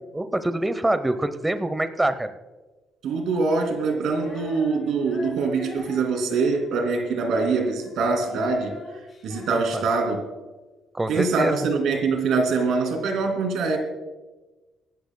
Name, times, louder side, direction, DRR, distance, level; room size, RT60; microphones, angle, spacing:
voice 1, 0.1-2.3 9.5-9.8 10.9-11.7, right 1 dB, 15° right, 0.7 m, -25 dB
voice 2, 3.0-8.7 9.2-10.2 11.1-13.8, right 4 dB, 80° right, 2.4 m, -24 dB
Female singing, 4.1-10.5, left 3 dB, 40° left, 4.4 m, -41 dB
25.0 x 12.0 x 2.2 m
cardioid pair, 90°, 0 cm